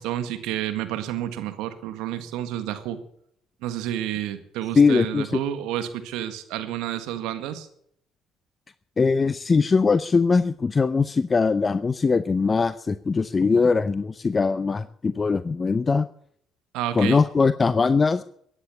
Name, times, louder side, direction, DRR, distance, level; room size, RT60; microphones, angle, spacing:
voice 1, 0.0-3.0 3.6-7.7 16.7-17.2, right 12 dB, 75° right, 10 dB, 1.7 m, -30 dB
voice 2, 4.8-5.4 9.0-16.1 16.9-18.2, left 4 dB, 35° left, 14 dB, 0.7 m, -21 dB
15.0 x 9.8 x 8.4 m, 0.68 s
hypercardioid pair, 55°, 0 cm